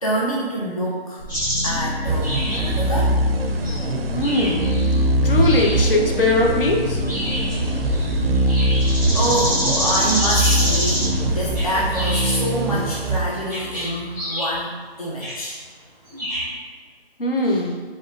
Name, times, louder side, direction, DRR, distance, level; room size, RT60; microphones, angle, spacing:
voice 1, 0.0-1.2 1.6-3.2 9.1-15.6 17.4-17.7, right 1 dB, 35° left, -6 dB, 0.5 m, -26 dB
sound 1, 1.2-13.0, left 2 dB, 80° left, 1.1 m, -29 dB
sound 2, 1.3-1.8 2.2-3.0 3.6-3.9 4.2-5.0 5.4-5.8 7.1-11.3 11.5-12.5 13.5-14.6 15.2-15.4 16.1-16.5, equal, 20° left, 1.4 m, -27 dB
sound 3, 2.1-13.9, right 2 dB, 65° right, 0.5 m, -23 dB
voice 2, 4.1-4.7 5.2-7.2 17.2-17.7, left 2 dB, 60° left, 1 dB, 0.8 m, -20 dB
5.2 x 3.1 x 2.5 m, 1.5 s
hypercardioid pair, 180°, 31 cm